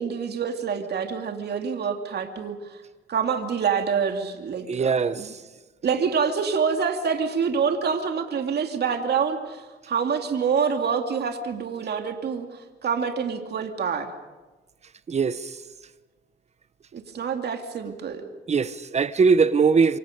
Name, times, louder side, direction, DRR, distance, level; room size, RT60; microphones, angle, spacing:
voice 1, 0.0-2.8 3.1-5.3 5.8-14.1 16.9-18.2, right 6 dB, 55° right, 2.6 m, -26 dB
voice 2, 4.7-5.2 15.1-15.5 18.5-20.0, right 5 dB, 35° right, 1.0 m, -21 dB
27.5 x 25.5 x 5.2 m
cardioid pair, 90°, 20 cm